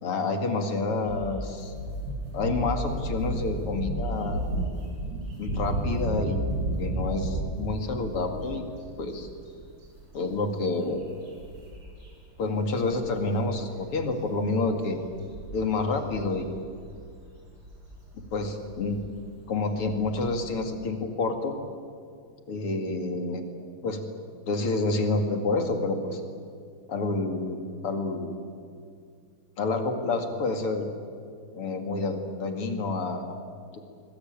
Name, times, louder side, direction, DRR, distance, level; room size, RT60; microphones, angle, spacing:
voice 1, 0.0-1.7 2.3-4.4 5.4-6.5 6.8-8.6 9.0-9.3 10.1-11.0 12.4-15.0 15.5-16.5 18.3-19.0 19.5-21.6 22.5-23.4 23.8-24.0 24.5-26.2 26.9-27.6 27.8-28.4 29.6-30.9 31.5-33.3, left 3 dB, 85° left, 6 dB, 3.3 m, -28 dB
sound 1, 1.0-12.1 12.4-12.6 12.9-20.6, right 1 dB, 55° right, 7.4 m, -33 dB
25.0 x 21.5 x 9.0 m, 2.3 s
omnidirectional pair, 2.4 m